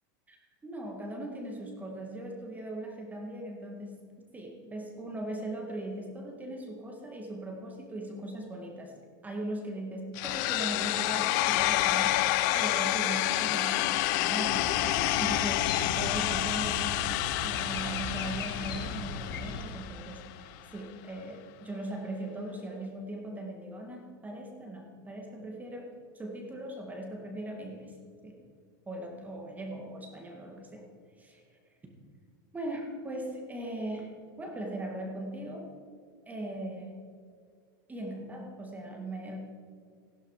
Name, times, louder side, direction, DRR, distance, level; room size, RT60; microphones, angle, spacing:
voice 1, 0.6-8.9 9.2-15.7 16.0-17.1 17.4-27.9 28.2-28.4 28.9-30.8 31.2-31.4 32.5-34.1 34.4-35.7 36.3-37.0 37.9-39.4, right 1 dB, 15° right, 1 dB, 2.3 m, -39 dB
sound 1, 10.2-20.1, left 15 dB, 55° left, 0.7 m, -29 dB
sound 2, 14.4-19.6, left 3 dB, 80° left, 1.9 m, -38 dB
15.5 x 12.5 x 5.0 m, 2.1 s
hypercardioid pair, 120°, 12 cm